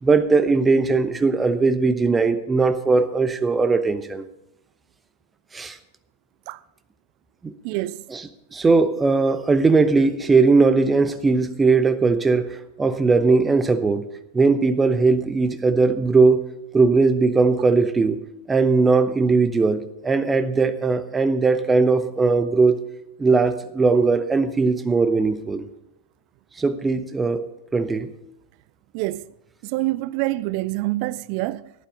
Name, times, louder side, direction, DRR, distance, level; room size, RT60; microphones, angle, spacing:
voice 1, 0.0-4.2 5.5-5.8 7.4-7.5 8.1-8.2 8.5-12.5 12.8-14.0 14.3-16.4 16.7-18.2 18.5-22.8 23.2-25.6 26.6-27.4 27.7-28.1, right 4 dB, 15° right, 0.9 m, -19 dB
voice 2, 7.6-8.0 28.9-29.2 29.6-31.7, right 18 dB, 45° right, 0.4 m, -26 dB
11.5 x 11.5 x 5.1 m
figure-of-eight pair, 90°, 0 cm